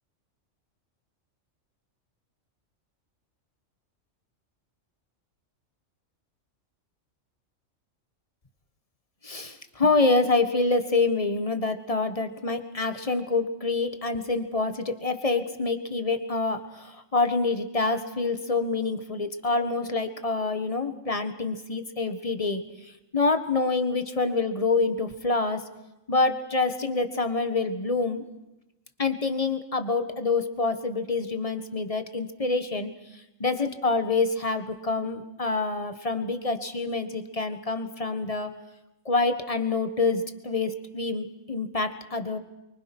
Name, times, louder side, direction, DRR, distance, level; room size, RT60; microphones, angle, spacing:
voice 1, 9.2-25.6 26.1-28.3 29.0-32.9 33.4-38.5 39.0-42.4, left 3 dB, 25° left, 8 dB, 1.6 m, -26 dB
29.0 x 24.0 x 6.2 m, 0.95 s
omnidirectional pair, 1.4 m